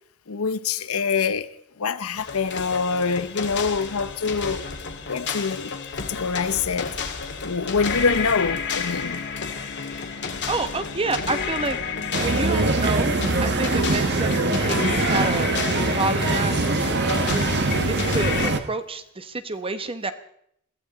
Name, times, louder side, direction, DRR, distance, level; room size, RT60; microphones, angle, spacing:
voice 1, 0.3-1.5 1.8-4.7 5.1-7.0 7.4-9.2, left 5 dB, 85° left, 0.8 m, -25 dB
sound 1, 2.2-18.5, left 5 dB, 55° left, 2.0 m, -31 dB
voice 2, 10.5-11.8 12.2-20.1, right 3 dB, 25° right, 1.1 m, -29 dB
sound 2, 12.1-18.6, right 2 dB, 50° right, 1.2 m, -23 dB
21.5 x 15.0 x 4.1 m
head